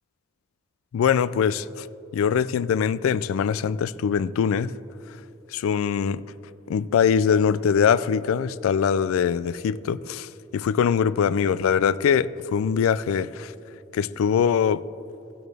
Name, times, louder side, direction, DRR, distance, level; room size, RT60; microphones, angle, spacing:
voice 1, 0.9-1.9 2.1-4.7 5.5-6.2 6.7-13.5 13.9-14.8, left 7 dB, 90° left, 18 dB, 0.3 m, -22 dB
15.5 x 8.5 x 3.4 m, 2.9 s
head